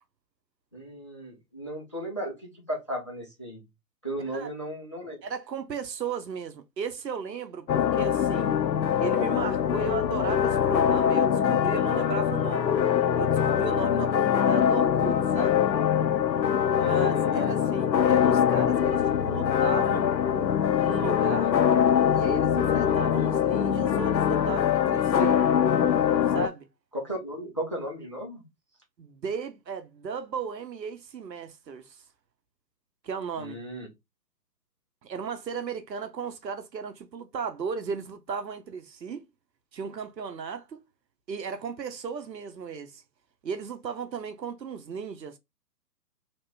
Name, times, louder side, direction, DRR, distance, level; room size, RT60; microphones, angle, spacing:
voice 1, 0.7-3.6 4.0-5.2 16.8-17.5 26.9-28.4 33.4-33.9, right 1 dB, 20° left, 0.4 m, -35 dB
voice 2, 5.2-8.6 9.0-12.8 13.1-15.7 16.7-20.1 20.8-21.5 22.1-25.4 26.3-26.7 29.0-32.0 33.0-33.6 35.0-39.3 39.7-40.8 41.3-43.0 43.4-45.4, right 6 dB, 80° right, 0.8 m, -36 dB
sound 1, 7.7-26.5, left 8 dB, 90° left, 0.6 m, -23 dB
3.0 x 2.9 x 3.3 m
figure-of-eight pair, 130°, 50 cm